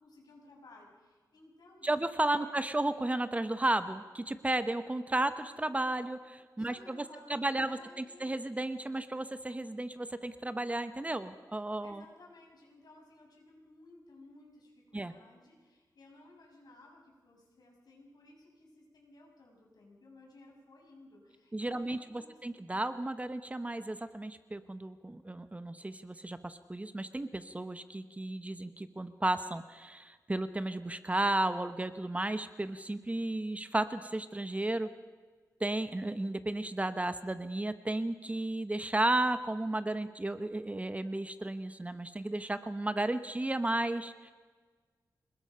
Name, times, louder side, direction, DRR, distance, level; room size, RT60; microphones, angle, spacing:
voice 1, 0.0-1.9 2.3-2.5 6.6-8.3 11.8-22.4, left 2 dB, 70° left, 0 dB, 6.1 m, -57 dB
voice 2, 1.8-7.0 7.3-12.0 14.9-15.1 21.5-34.9 35.6-44.3, right 2 dB, 20° right, 11 dB, 1.0 m, -33 dB
26.5 x 20.0 x 5.6 m, 1.5 s
wide cardioid pair, 95°, 7 cm